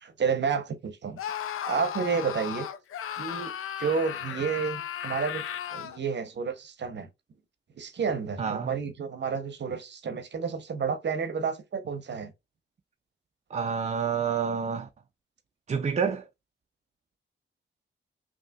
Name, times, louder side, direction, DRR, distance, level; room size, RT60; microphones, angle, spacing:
voice 1, 0.0-1.2 1.6-2.7 3.1-3.5 3.8-5.4 5.7-7.1 7.8-12.3, right 6 dB, 55° right, 0.7 m, -30 dB
Screaming, 1.2-6.0, left 10 dB, 85° left, 0.5 m, -35 dB
voice 2, 8.4-8.7 13.5-14.9 15.7-16.3, right 6 dB, 35° right, 0.4 m, -28 dB
5.3 x 2.8 x 2.3 m
wide cardioid pair, 120°, 21 cm